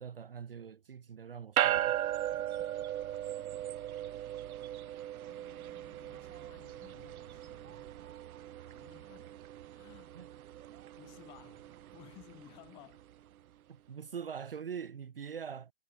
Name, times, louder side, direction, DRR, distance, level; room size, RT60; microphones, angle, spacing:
voice 1, 0.0-2.0 10.1-10.3 13.7-15.7, right 7 dB, 40° right, 1.5 m, -43 dB
sound 1, 1.6-13.1, right 12 dB, 85° right, 0.5 m, -38 dB
voice 2, 5.3-7.9 8.7-9.4 9.7-10.1 10.9-13.1, left 24 dB, 10° left, 3.3 m, -58 dB
hypercardioid pair, 175°, 42 cm